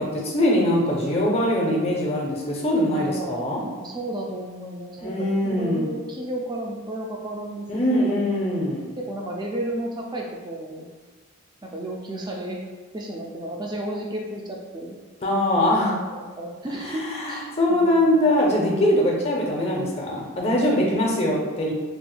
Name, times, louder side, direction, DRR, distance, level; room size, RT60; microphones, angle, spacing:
voice 1, 0.0-3.6 5.0-5.9 7.7-8.9 15.2-16.0 16.9-21.7, left 1 dB, 30° left, -1 dB, 0.6 m, -22 dB
voice 2, 2.9-8.2 9.0-10.9 11.6-12.6 12.9-15.0 15.9-18.3, right 1 dB, 20° right, -1 dB, 0.4 m, -33 dB
3.4 x 3.3 x 2.2 m, 1.3 s
head